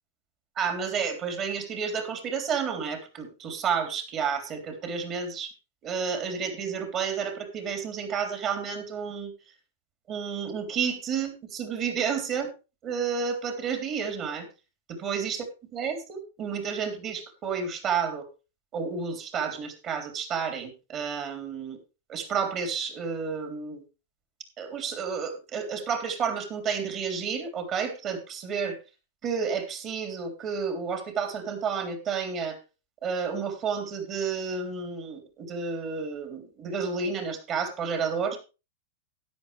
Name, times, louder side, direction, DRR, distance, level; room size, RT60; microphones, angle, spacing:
voice 1, 0.6-5.5 5.8-9.3 10.1-12.5 12.8-14.5 15.0-15.4 15.7-18.2 18.7-21.8 22.1-23.8 24.6-28.8 29.2-32.6 33.0-38.4, right 6 dB, 30° right, 6 dB, 3.4 m, -31 dB
13.0 x 9.9 x 3.4 m, 0.30 s
hypercardioid pair, 135°, 0 cm